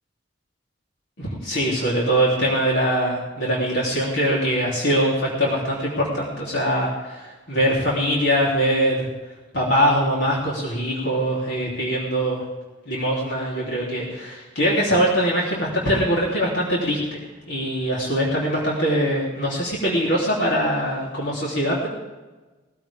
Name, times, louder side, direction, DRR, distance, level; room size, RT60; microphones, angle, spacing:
voice 1, 1.2-9.1 9.5-12.5 12.9-21.9, equal, 80° left, -5 dB, 3.3 m, -22 dB
19.0 x 15.0 x 3.6 m, 1.2 s
head